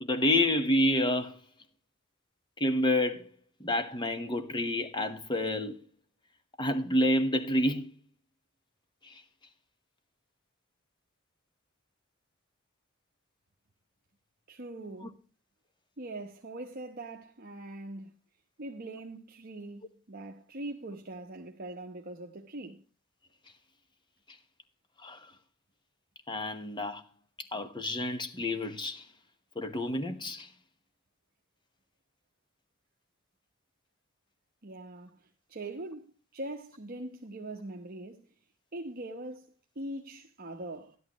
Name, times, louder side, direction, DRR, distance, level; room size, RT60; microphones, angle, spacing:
voice 1, 0.0-1.4 2.6-3.3 3.6-5.8 6.6-7.9 9.0-9.2 25.0-25.2 26.3-27.0 27.5-29.1 29.5-30.5, left 1 dB, 25° left, 1.1 m, -29 dB
voice 2, 14.5-15.2 16.0-18.1 18.6-22.8 34.6-38.3 38.7-41.0, right 2 dB, 45° right, 1.0 m, -42 dB
12.5 x 11.5 x 3.0 m
head